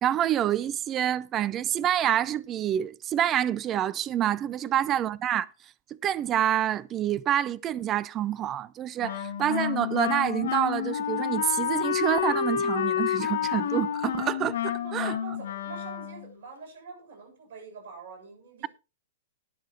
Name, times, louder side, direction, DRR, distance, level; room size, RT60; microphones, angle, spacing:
voice 1, 0.0-5.5 6.0-15.1, right 11 dB, 25° right, 0.5 m, -27 dB
Wind instrument woodwind instrument, 9.0-16.3, left 9 dB, 65° left, 1.6 m, -29 dB
voice 2, 14.7-18.7, right 5 dB, 55° right, 6.8 m, -45 dB
20.0 x 6.9 x 2.8 m
figure-of-eight pair, 110°, 0 cm